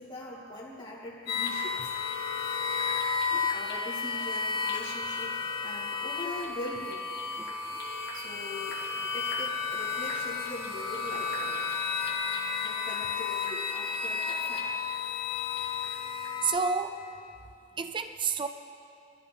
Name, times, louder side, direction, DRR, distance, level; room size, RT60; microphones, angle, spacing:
voice 1, 0.0-1.9 2.4-2.6 3.5-7.0 8.1-11.8 12.6-14.7 17.7-17.8, left 1 dB, 25° left, -6 dB, 3.3 m, -42 dB
sound 1, 1.3-16.6, left 5 dB, 55° left, 2.5 m, -32 dB
voice 2, 16.4-17.0 17.8-18.5, right 5 dB, 25° right, 8 dB, 0.4 m, -30 dB
25.0 x 13.5 x 3.6 m, 2.5 s
head